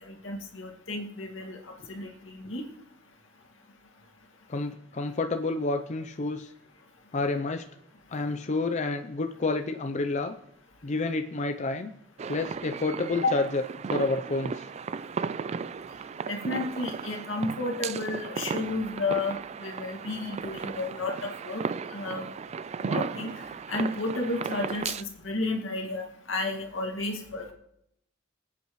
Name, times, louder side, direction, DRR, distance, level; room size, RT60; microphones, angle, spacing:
voice 1, 0.0-1.6 1.9-2.6 13.2-13.3 16.3-21.6 21.9-22.3 22.8-23.3 23.7-27.5, left 2 dB, 85° left, 2 dB, 2.0 m, -32 dB
voice 2, 4.5-6.5 7.1-7.6 8.1-10.4 10.8-11.9 12.3-13.6 13.9-14.7, left 3 dB, 40° left, 6 dB, 0.5 m, -29 dB
sound 1, 12.2-25.0, right 5 dB, 35° right, 0.3 m, -35 dB
24.0 x 8.3 x 3.1 m, 0.77 s
head